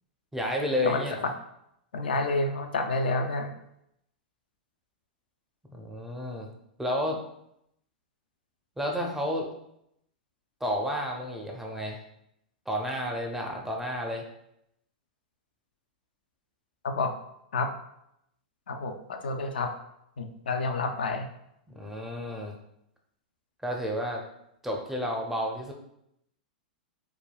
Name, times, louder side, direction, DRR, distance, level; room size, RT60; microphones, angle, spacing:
voice 1, 0.3-1.3 5.7-6.5 6.8-7.2 8.8-9.5 10.6-12.0 12.7-14.2 21.7-22.6 23.6-24.2 24.6-25.7, equal, 5° right, 1 dB, 0.5 m, -31 dB
voice 2, 0.8-1.3 1.9-3.5 16.8-17.1 17.5-17.7 18.7-19.7 20.2-21.3, left 3 dB, 80° left, 5 dB, 0.3 m, -29 dB
3.3 x 2.2 x 2.2 m, 0.77 s
hypercardioid pair, 110°, 5 cm